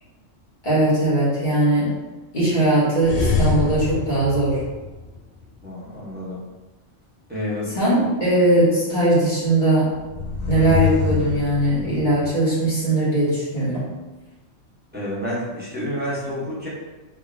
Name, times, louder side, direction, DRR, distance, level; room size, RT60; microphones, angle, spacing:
voice 1, 0.6-2.0 2.3-4.6 7.7-9.9 10.5-13.9, right 1 dB, 35° left, -9 dB, 1.5 m, -20 dB
sound 1, 3.0-5.4 10.0-12.3, left 4 dB, 65° left, 0.5 m, -25 dB
voice 2, 5.6-6.4 7.3-7.8 14.9-16.7, equal, 10° right, -9 dB, 0.8 m, -29 dB
3.4 x 3.3 x 2.4 m, 1.2 s
omnidirectional pair, 1.4 m